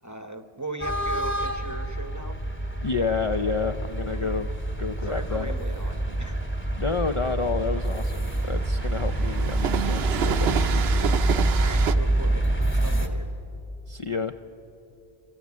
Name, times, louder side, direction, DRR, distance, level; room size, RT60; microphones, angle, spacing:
voice 1, 0.0-2.4 4.2-4.3 5.0-6.5 11.6-12.5 12.8-13.3, right 2 dB, 20° right, 9 dB, 0.8 m, -38 dB
sound 1, 0.8-13.1, right 1 dB, 10° left, 1.3 m, -26 dB
voice 2, 2.8-4.5 4.8-5.5 6.7-11.2 13.9-14.3, left 4 dB, 40° left, 7 dB, 0.5 m, -30 dB
Train, 2.8-11.9, right 8 dB, 80° right, 0.9 m, -31 dB
26.5 x 14.0 x 8.3 m, 2.9 s
omnidirectional pair, 1.0 m